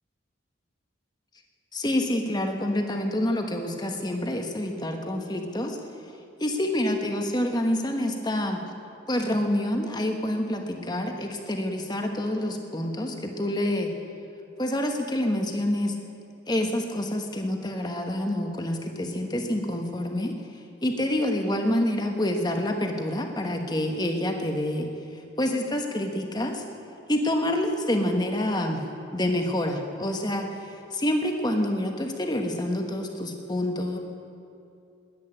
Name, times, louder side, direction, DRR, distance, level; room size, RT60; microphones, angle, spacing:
voice 1, 1.7-5.8 6.4-8.6 9.1-13.9 14.6-15.9 16.5-20.3 20.8-24.9 25.4-26.6 27.1-28.8 29.1-34.0, left 1 dB, 20° left, 3 dB, 1.2 m, -27 dB
11.0 x 11.0 x 8.9 m, 2.7 s
head